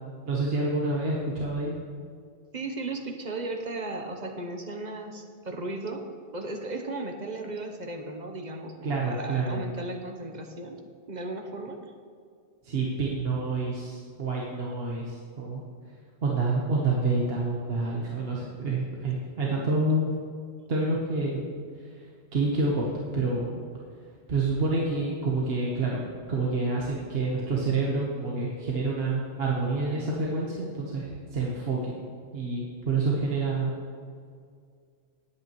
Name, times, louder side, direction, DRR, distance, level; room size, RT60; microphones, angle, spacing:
voice 1, 0.3-1.8 8.8-9.6 12.6-15.6 16.2-20.1 20.7-21.5 21.8-22.1 22.3-23.6 24.3-26.0 26.3-31.9 32.3-33.7, right 3 dB, 60° right, -4 dB, 1.4 m, -28 dB
voice 2, 2.5-10.8 11.1-11.8 19.4-19.7, right 2 dB, 40° right, 3 dB, 1.0 m, -36 dB
18.5 x 8.6 x 3.1 m, 2.2 s
omnidirectional pair, 1.1 m